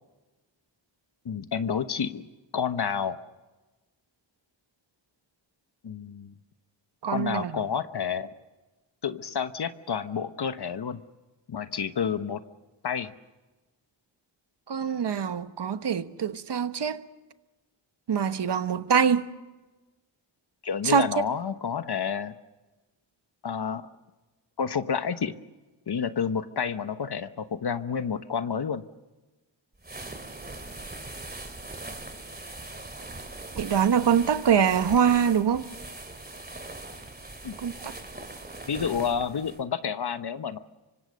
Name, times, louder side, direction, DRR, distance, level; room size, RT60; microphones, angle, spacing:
voice 1, 1.2-2.2 2.5-3.2 5.8-6.3 7.1-8.3 9.0-11.0 11.5-12.4 12.8-13.1 20.6-22.3 23.4-23.9 24.6-25.3 25.9-28.8 37.4-37.5 38.7-40.6, left 7 dB, 55° left, 1.1 m, -29 dB
voice 2, 7.0-7.6 14.7-17.0 18.1-19.3 20.8-21.2 33.6-35.7 37.6-37.9, right 7 dB, 60° right, 1.2 m, -24 dB
sound 1, 29.8-39.6, right 2 dB, 20° right, 2.5 m, -41 dB
25.5 x 25.0 x 6.5 m
wide cardioid pair, 80°, 46 cm